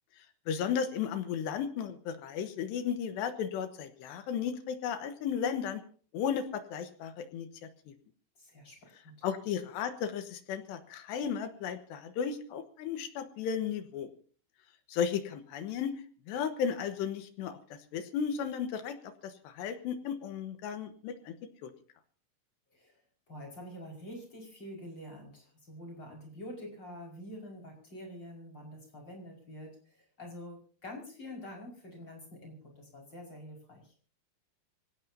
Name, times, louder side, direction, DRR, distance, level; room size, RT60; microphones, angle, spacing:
voice 1, 0.5-5.8 6.1-7.5 9.2-14.1 14.9-15.9 16.3-21.3 21.6-21.7, left 7 dB, 75° left, 9 dB, 3.1 m, -34 dB
voice 2, 8.4-9.3 22.7-23.0 23.3-33.9, left 1 dB, 25° left, 0 dB, 5.7 m, -47 dB
25.5 x 17.5 x 2.8 m, 0.42 s
omnidirectional pair, 5.5 m